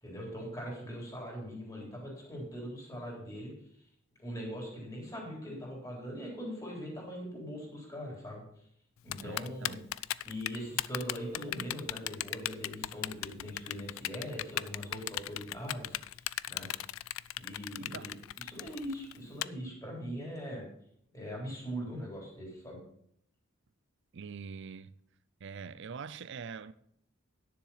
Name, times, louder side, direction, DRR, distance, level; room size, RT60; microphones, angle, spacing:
voice 1, 0.0-3.5 4.2-8.4 9.0-9.8 10.2-16.2 16.5-16.7 17.4-20.7 21.1-22.8, equal, 15° left, 3.7 m, -41 dB
Typing, 9.1-19.4, left 14 dB, 75° left, 0.3 m, -36 dB
voice 2, 9.2-9.9 17.8-18.1 24.1-24.9 25.4-26.7, right 5 dB, 60° right, 0.5 m, -44 dB
9.8 x 7.2 x 5.7 m
head